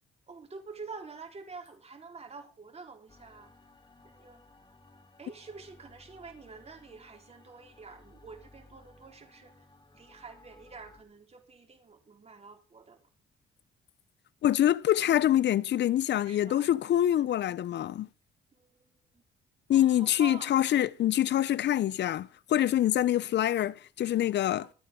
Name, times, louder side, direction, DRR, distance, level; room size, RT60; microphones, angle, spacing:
voice 1, 0.3-3.5 4.0-4.4 5.2-9.7 9.9-13.0 16.2-16.7 18.5-19.2 19.7-20.5 24.6-24.7, right 4 dB, 30° right, 4.2 m, -47 dB
sound 1, 3.1-11.0, left 2 dB, 25° left, 2.9 m, -58 dB
voice 2, 14.4-18.1 19.7-24.7, left 12 dB, 65° left, 0.7 m, -25 dB
24.5 x 9.3 x 3.8 m
cardioid pair, 90°, 20 cm